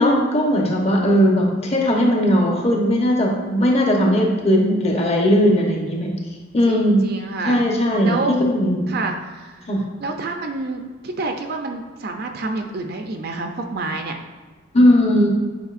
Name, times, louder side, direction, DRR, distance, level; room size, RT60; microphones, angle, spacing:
voice 1, 0.0-6.2 6.5-7.1 7.5-8.9 9.7-9.8 14.7-15.3, equal, 35° left, -1 dB, 1.0 m, -18 dB
voice 2, 6.7-7.6 8.0-8.4 8.9-9.7 10.0-14.2, right 3 dB, 55° right, 4 dB, 0.5 m, -28 dB
7.9 x 4.7 x 2.5 m, 1.3 s
head